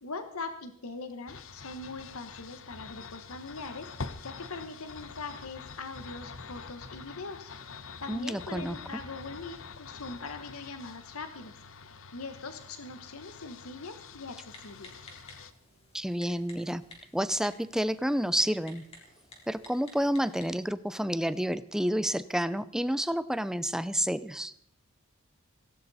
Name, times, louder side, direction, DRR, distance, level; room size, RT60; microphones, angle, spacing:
voice 1, 0.0-3.9 4.2-7.5 8.0-11.5 12.1-14.9, left 3 dB, 80° left, 8 dB, 1.2 m, -41 dB
sound 1, 1.3-15.5, left 4 dB, 60° left, 1.0 m, -46 dB
voice 2, 8.1-8.8 15.9-16.8 17.1-18.8 19.5-24.5, equal, 5° right, 15 dB, 0.5 m, -29 dB
Typing, 14.5-20.7, left 2 dB, 25° left, 3.9 m, -54 dB
17.5 x 17.0 x 4.2 m, 0.67 s
head